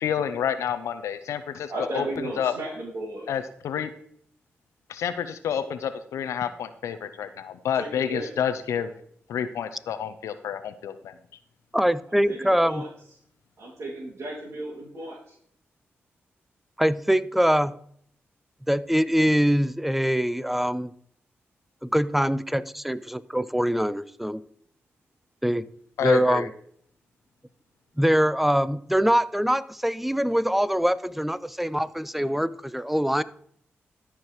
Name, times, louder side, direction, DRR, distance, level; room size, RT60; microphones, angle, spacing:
voice 1, 0.0-2.5 3.3-3.9 4.9-8.9 9.3-11.1 26.0-26.5, left 8 dB, 90° left, 10 dB, 0.6 m, -29 dB
voice 2, 1.7-3.3 7.8-8.3 12.3-12.9 13.6-15.3, right 1 dB, 55° right, -6 dB, 3.3 m, -34 dB
voice 3, 11.7-12.8 16.8-17.7 18.7-20.9 21.8-24.4 25.4-25.7 26.0-26.5 28.0-33.2, equal, 5° right, 17 dB, 0.6 m, -23 dB
13.0 x 4.9 x 4.6 m, 0.65 s
supercardioid pair, 50°, 5 cm